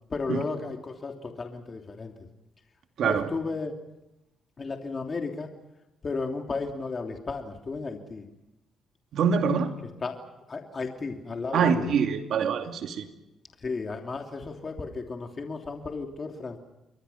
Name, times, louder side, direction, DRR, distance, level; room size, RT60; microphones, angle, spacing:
voice 1, 0.1-2.1 3.0-3.7 4.6-5.5 6.0-8.2 10.0-10.2 10.5-11.9 13.6-16.6, left 4 dB, 35° left, 3 dB, 3.0 m, -34 dB
voice 2, 3.0-3.3 9.1-9.8 11.5-13.1, right 6 dB, 70° right, 5 dB, 2.5 m, -25 dB
29.5 x 22.5 x 5.8 m, 0.93 s
cardioid pair, 90°, 0 cm